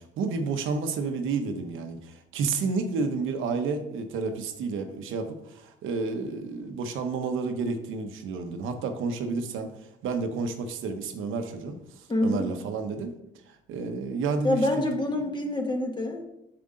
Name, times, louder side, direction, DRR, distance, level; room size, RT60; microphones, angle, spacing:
voice 1, 0.0-13.1 13.5-15.0, right 4 dB, 85° right, 6 dB, 0.9 m, -31 dB
voice 2, 12.1-12.5 14.4-16.2, left 1 dB, 20° left, 2 dB, 1.7 m, -26 dB
7.6 x 6.8 x 3.8 m, 0.83 s
cardioid pair, 90°, 20 cm